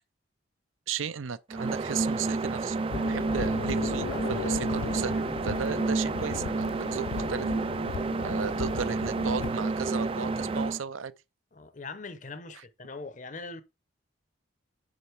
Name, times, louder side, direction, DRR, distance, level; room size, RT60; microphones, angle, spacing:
voice 1, 0.9-5.1 5.4-7.5 8.2-11.1 12.5-12.6, right 7 dB, 85° right, 0.6 m, -35 dB
sound 1, 1.5-10.8, right 3 dB, 25° right, 0.3 m, -30 dB
sound 2, 2.9-9.5, left 6 dB, 75° left, 0.3 m, -37 dB
voice 2, 3.2-3.5 5.5-5.8 11.5-13.6, left 3 dB, 40° left, 0.7 m, -42 dB
6.7 x 5.4 x 4.6 m
head